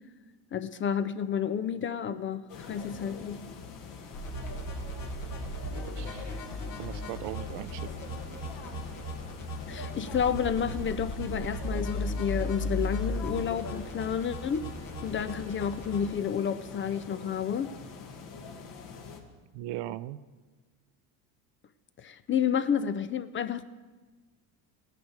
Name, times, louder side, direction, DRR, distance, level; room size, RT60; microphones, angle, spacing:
voice 1, 0.5-3.4 9.7-14.7 15.0-17.7 22.0-23.6, left 8 dB, 30° left, 13 dB, 0.4 m, -30 dB
sound 1, 2.5-19.2, left 5 dB, 65° left, 1.9 m, -44 dB
sound 2, 4.1-16.1, equal, 85° left, 3.4 m, -36 dB
voice 2, 5.6-6.4 6.8-8.2 19.5-20.2, right 14 dB, 70° right, 16 dB, 0.6 m, -39 dB
16.5 x 10.5 x 4.7 m, 1.4 s
supercardioid pair, 105°, 45 cm